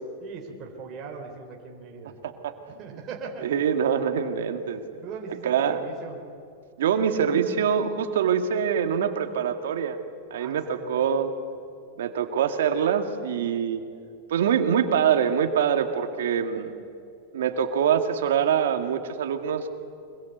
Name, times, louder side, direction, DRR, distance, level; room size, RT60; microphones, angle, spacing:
voice 1, 0.2-2.1 2.8-3.5 5.0-6.2 10.3-11.0, right 5 dB, 30° right, 1 dB, 3.4 m, -40 dB
voice 2, 2.2-2.8 3.4-4.8 5.4-5.8 6.8-10.0 10.3-11.3 12.0-13.8 14.3-16.7 17.3-19.7, right 8 dB, 80° right, 7 dB, 2.0 m, -24 dB
24.5 x 21.0 x 8.1 m, 2.5 s
supercardioid pair, 150°, 0 cm